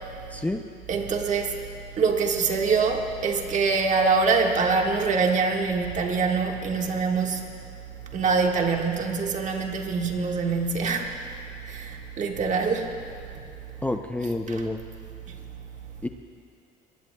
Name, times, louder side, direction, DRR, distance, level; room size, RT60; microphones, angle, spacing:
voice 1, 0.3-0.6 13.8-14.8 16.0-16.1, left 2 dB, 10° left, 5 dB, 0.5 m, -28 dB
voice 2, 0.9-1.6 2.0-7.4 8.1-11.1 11.6-13.0 14.5-14.6 15.3-15.4, right 4 dB, 45° right, 2 dB, 1.6 m, -24 dB
21.5 x 20.0 x 2.3 m, 2.4 s
cardioid pair, 110°, 17 cm